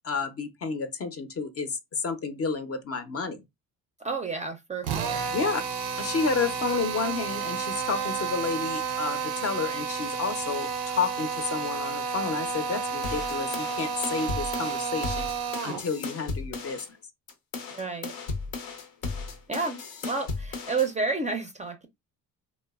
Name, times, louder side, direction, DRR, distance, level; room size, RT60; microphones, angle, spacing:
voice 1, 0.0-3.4 5.3-5.6 6.0-15.3 15.6-16.8, left 4 dB, 40° left, 0.5 m, -30 dB
voice 2, 4.0-5.2 17.7-18.1 19.5-21.9, right 4 dB, 20° right, 0.4 m, -31 dB
Drill, 4.8-15.9, right 6 dB, 90° right, 0.5 m, -31 dB
sound 1, 13.0-16.9 17.3-20.9, left 4 dB, 90° left, 0.7 m, -35 dB
2.9 x 2.0 x 2.2 m
supercardioid pair, 70°, 37 cm